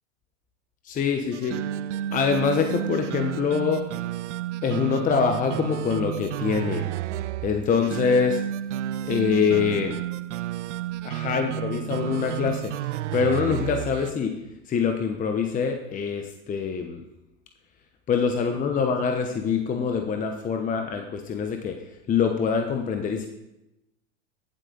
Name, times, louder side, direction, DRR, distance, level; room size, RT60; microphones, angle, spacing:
voice 1, 0.8-1.6 2.1-3.9 4.6-6.8 7.4-8.4 9.0-10.0 11.0-12.7 13.1-14.4 14.7-17.0 18.1-21.8 22.1-23.3, left 6 dB, 20° left, 4 dB, 1.0 m, -24 dB
sound 1, 1.3-14.1, right 12 dB, 80° right, 0.5 m, -31 dB
16.0 x 7.8 x 4.0 m, 0.93 s
hypercardioid pair, 110°, 35 cm